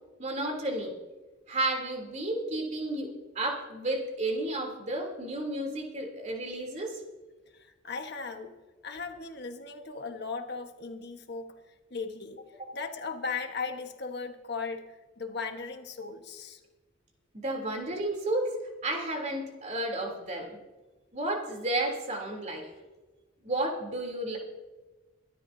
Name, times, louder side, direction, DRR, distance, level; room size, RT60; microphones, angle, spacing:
voice 1, 0.2-1.0 1.5-7.0 12.6-12.7 17.4-18.5 18.8-20.6 21.1-22.7 23.4-24.4, right 1 dB, 40° right, 1 dB, 3.4 m, -32 dB
voice 2, 7.5-8.5 8.8-16.6, left 4 dB, 60° left, 5 dB, 1.4 m, -37 dB
24.5 x 12.5 x 2.8 m, 1.2 s
head